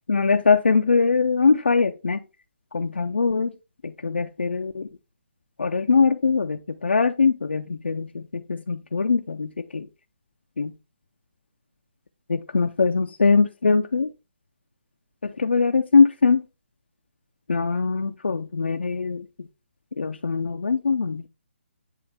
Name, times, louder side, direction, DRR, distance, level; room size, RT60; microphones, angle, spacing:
voice 1, 0.1-2.2 2.7-3.5 3.8-4.9 5.6-9.9 10.6-10.7 12.3-14.1 15.2-16.4 17.5-19.5 20.0-21.3, left 4 dB, 65° left, 0.5 m, -22 dB
9.9 x 3.3 x 3.4 m
figure-of-eight pair, 140°, 7 cm